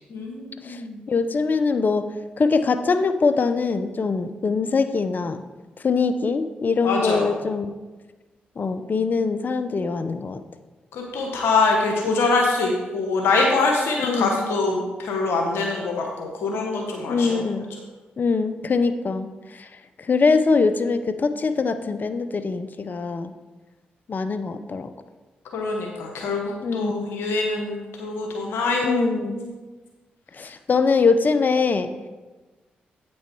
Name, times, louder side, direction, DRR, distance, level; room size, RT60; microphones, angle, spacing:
voice 1, 0.1-1.0 6.8-7.3 10.9-17.4 25.5-29.5, left 3 dB, 80° left, 0 dB, 1.2 m, -24 dB
voice 2, 1.1-2.1 2.4-5.4 5.8-7.7 8.6-10.4 14.0-14.4 17.1-17.7 18.2-19.7 20.0-23.3 24.1-24.9 26.6-27.1 28.8-29.5 30.3-31.9, left 4 dB, 50° left, 10 dB, 0.6 m, -23 dB
8.7 x 6.2 x 4.6 m, 1.2 s
supercardioid pair, 45°, 4 cm